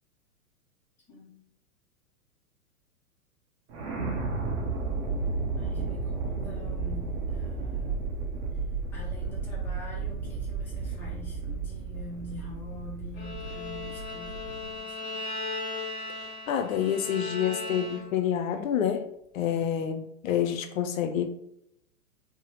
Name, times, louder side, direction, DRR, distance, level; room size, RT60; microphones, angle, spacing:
voice 1, 1.1-1.5 5.6-8.2 8.5-8.6 8.9-15.3 19.4-19.9, left 2 dB, 5° left, -5 dB, 0.5 m, -46 dB
sound 1, 3.7-14.8, right 4 dB, 45° right, 0.7 m, -33 dB
Bowed string instrument, 13.1-18.3, left 2 dB, 45° left, 1.3 m, -37 dB
voice 2, 16.5-21.3, left 9 dB, 65° left, 7 dB, 0.5 m, -28 dB
2.8 x 2.1 x 2.8 m, 0.75 s
hypercardioid pair, 110°, 43 cm